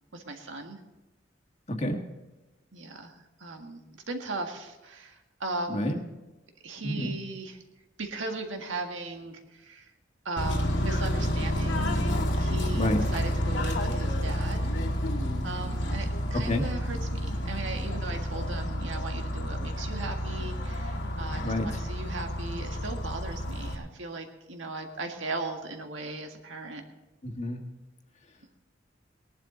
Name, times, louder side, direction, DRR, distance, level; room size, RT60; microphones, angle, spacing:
voice 1, 0.1-0.8 2.7-3.1 3.4-6.1 6.6-7.6 8.0-9.9 10.3-14.7 15.4-26.8, right 3 dB, 85° right, 3 dB, 1.9 m, -38 dB
voice 2, 1.7-2.0 5.7-6.0 6.8-7.1 12.7-13.0 16.4-16.7 21.4-21.8 27.2-27.6, left 1 dB, 35° left, 3 dB, 1.7 m, -29 dB
Bird / Train, 10.4-23.7, equal, 70° left, 2.1 m, -30 dB
19.0 x 11.5 x 3.9 m, 1.1 s
head